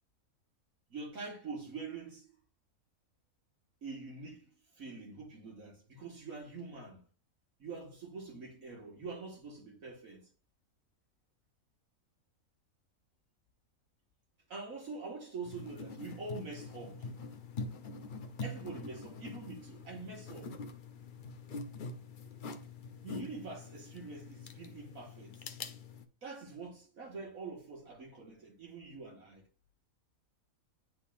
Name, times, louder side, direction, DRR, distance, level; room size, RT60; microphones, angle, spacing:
voice 1, 0.9-2.3 3.8-4.5 4.8-7.0 7.6-10.2 14.5-17.1 18.4-20.5 23.0-25.4 26.2-29.4, right 3 dB, 70° right, 1.7 m, -45 dB
sound 1, 15.4-26.1, left 3 dB, 50° left, 0.6 m, -45 dB
10.0 x 3.8 x 2.5 m
omnidirectional pair, 1.5 m